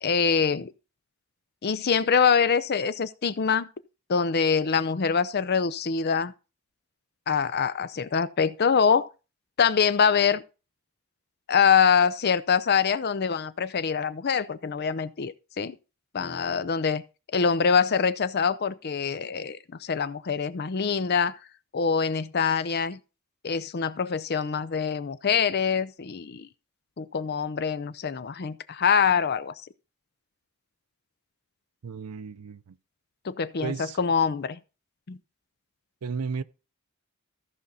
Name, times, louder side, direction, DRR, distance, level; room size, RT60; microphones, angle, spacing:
voice 1, 0.0-0.7 1.6-3.7 4.1-6.3 7.3-9.1 9.6-10.4 11.5-15.8 16.1-17.0 17.3-21.3 21.7-23.0 23.4-26.5 27.0-29.5 33.2-34.6 35.1-35.2, left 6 dB, 45° left, 0.5 m, -24 dB
voice 2, 31.8-32.8 33.6-34.1 36.0-36.4, right 5 dB, 85° right, 0.5 m, -34 dB
14.0 x 5.2 x 4.1 m
head